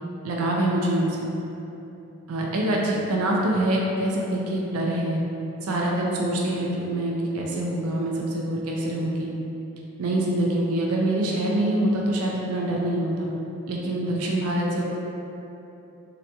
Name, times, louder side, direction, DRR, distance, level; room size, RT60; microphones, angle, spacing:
voice 1, 0.2-1.3 2.3-5.2 5.6-9.3 10.0-13.3 13.7-14.8, right 1 dB, 80° right, -2 dB, 0.4 m, -25 dB
3.8 x 2.9 x 2.2 m, 3.0 s
head